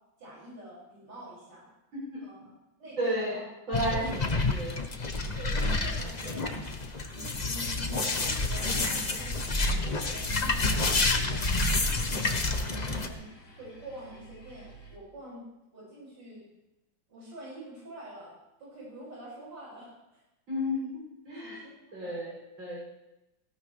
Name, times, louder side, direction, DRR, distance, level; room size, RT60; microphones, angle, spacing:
voice 1, 0.2-1.7 2.2-2.5 2.8-3.4 3.9-4.2 5.4-6.6 7.1-11.6 12.0-12.4 12.7-13.3 13.6-15.5 15.7-16.4 17.1-20.2 21.3-22.2, right 1 dB, 60° right, -7 dB, 7.2 m, -46 dB
voice 2, 3.0-3.4 3.7-4.2 4.5-4.7 20.5-21.6 21.9-22.8, equal, 75° right, -5 dB, 7.7 m, -32 dB
sound 1, 3.7-13.1, left 2 dB, 30° left, 0.8 m, -29 dB
Car / Engine starting, 8.5-15.0, equal, 60° left, 3.3 m, -46 dB
18.5 x 17.5 x 3.3 m, 0.92 s
omnidirectional pair, 2.2 m